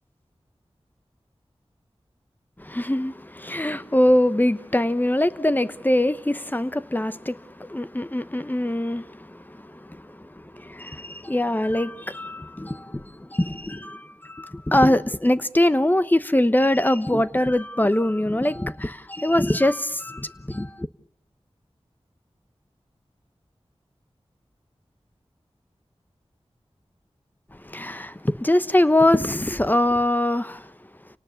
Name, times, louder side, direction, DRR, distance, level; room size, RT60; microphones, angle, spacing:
voice 1, 2.6-20.9 27.6-30.7, left 1 dB, 15° left, 1.0 m, -23 dB
29.0 x 18.5 x 7.1 m
wide cardioid pair, 60°, 11 cm